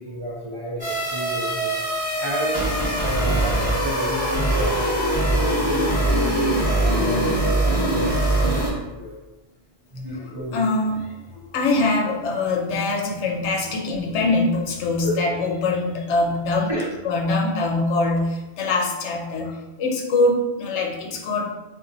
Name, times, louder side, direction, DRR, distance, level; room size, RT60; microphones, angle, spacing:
voice 1, 0.0-4.8 5.2-9.2 9.9-10.6 15.0-15.2 16.7-16.8, equal, 30° right, -6 dB, 0.5 m, -31 dB
sound 1, 0.8-8.7, right 1 dB, 25° left, 0.9 m, -22 dB
voice 2, 10.5-16.7 17.0-21.5, left 2 dB, 90° left, 1 dB, 0.9 m, -23 dB
4.0 x 2.5 x 2.6 m, 1.1 s
omnidirectional pair, 1.1 m